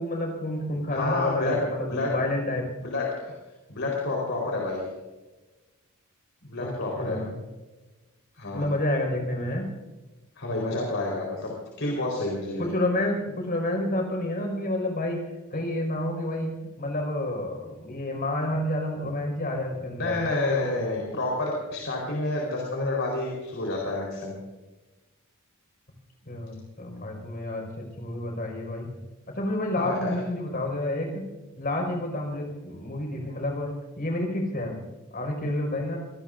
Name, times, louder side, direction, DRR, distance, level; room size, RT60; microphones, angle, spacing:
voice 1, 0.0-2.7 6.6-7.4 8.5-9.7 12.6-15.2 15.5-20.2 26.2-28.9 29.3-31.2 31.6-34.8 35.1-36.0, left 1 dB, 40° left, 2 dB, 5.1 m, -29 dB
voice 2, 0.9-2.2 2.8-3.3 3.7-4.9 6.4-7.2 8.4-8.6 10.4-11.5 11.8-12.7 20.0-24.3 29.8-30.2, left 2 dB, 60° left, -2 dB, 4.3 m, -29 dB
26.5 x 18.0 x 2.6 m, 1.1 s
head